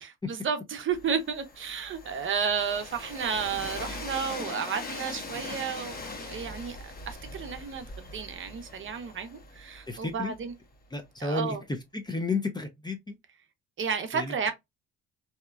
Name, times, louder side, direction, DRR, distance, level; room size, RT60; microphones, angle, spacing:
voice 1, 0.0-6.8 7.1-10.5 11.2-11.6 13.8-14.5, right 6 dB, 40° right, 0.7 m, -32 dB
Train, 0.9-10.7, left 2 dB, 30° left, 0.9 m, -41 dB
voice 2, 9.9-10.3 10.9-11.6 11.9-13.2 14.1-14.5, left 3 dB, 15° left, 0.5 m, -32 dB
2.8 x 2.2 x 2.2 m
supercardioid pair, 85°, 30 cm